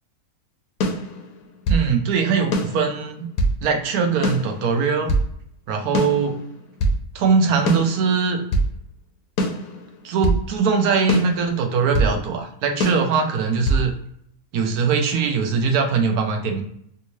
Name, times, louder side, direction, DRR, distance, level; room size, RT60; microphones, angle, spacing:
sound 1, 0.8-1.9 2.5-3.6 4.2-5.3 5.9-7.0 7.7-8.7 9.4-10.4 11.1-12.2 12.8-13.9, right 1 dB, 70° left, 1.1 m, -23 dB
voice 1, 1.7-3.2 3.6-5.1 5.7-6.4 7.1-8.4 10.0-13.9 14.5-16.6, right 5 dB, 75° right, 4 dB, 1.1 m, -21 dB
3.5 x 2.6 x 3.0 m, 0.70 s
omnidirectional pair, 1.7 m